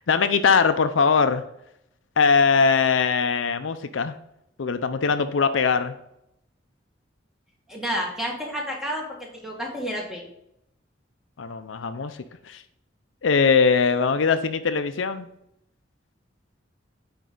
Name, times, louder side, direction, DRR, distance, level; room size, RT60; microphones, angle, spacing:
voice 1, 0.1-1.4 2.2-4.1 4.6-5.9 11.4-12.2 12.5-12.6 13.2-15.3, left 5 dB, 85° left, 10 dB, 0.5 m, -21 dB
voice 2, 7.7-9.0 9.4-10.3, equal, ahead, -1 dB, 1.5 m, -30 dB
9.3 x 4.4 x 3.8 m, 0.78 s
head